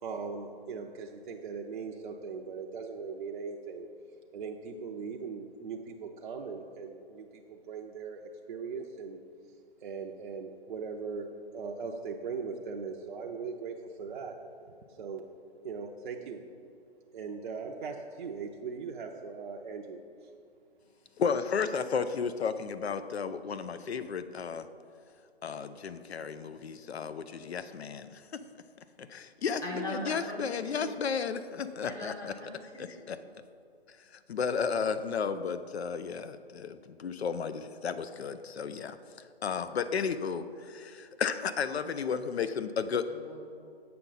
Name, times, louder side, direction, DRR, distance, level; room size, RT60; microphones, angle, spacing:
voice 1, 0.0-3.9 4.3-8.2 8.5-9.2 9.8-11.3 11.5-14.4 15.0-15.2 15.6-16.4 17.1-20.0, right 5 dB, 50° right, 1 dB, 0.5 m, -39 dB
voice 2, 21.2-24.7 25.4-28.4 29.0-32.3 32.8-33.2 34.0-39.0 39.4-43.1, left 6 dB, 80° left, 12 dB, 0.5 m, -33 dB
voice 3, 29.6-31.0 31.8-33.1 43.1-43.4, left 1 dB, 10° left, -3 dB, 0.7 m, -40 dB
7.6 x 5.7 x 3.9 m, 2.3 s
figure-of-eight pair, 140°, 31 cm